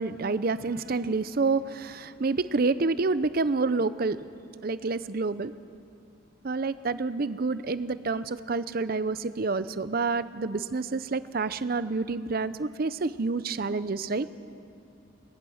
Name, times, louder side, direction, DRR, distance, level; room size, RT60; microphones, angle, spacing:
voice 1, 0.0-4.2 4.6-5.5 6.4-14.3, right 3 dB, 45° right, 14 dB, 0.5 m, -28 dB
22.5 x 20.0 x 6.4 m, 2.7 s
head